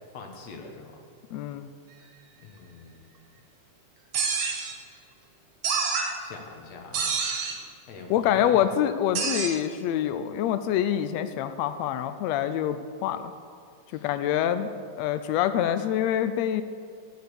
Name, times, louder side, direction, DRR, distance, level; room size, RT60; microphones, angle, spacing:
voice 1, 0.1-1.0 2.4-3.1 4.8-5.1 6.2-7.2 7.9-8.7 13.9-14.1, left 4 dB, 65° left, 3 dB, 2.1 m, -44 dB
voice 2, 1.3-1.7 8.1-13.2 13.9-14.7 15.0-16.6, left 10 dB, 85° left, 11 dB, 1.5 m, -26 dB
sound 1, 4.1-4.7 5.6-6.1 6.9-7.6 9.1-9.5, right 5 dB, 60° right, 2.5 m, -27 dB
15.5 x 6.3 x 6.8 m, 2.2 s
omnidirectional pair, 3.6 m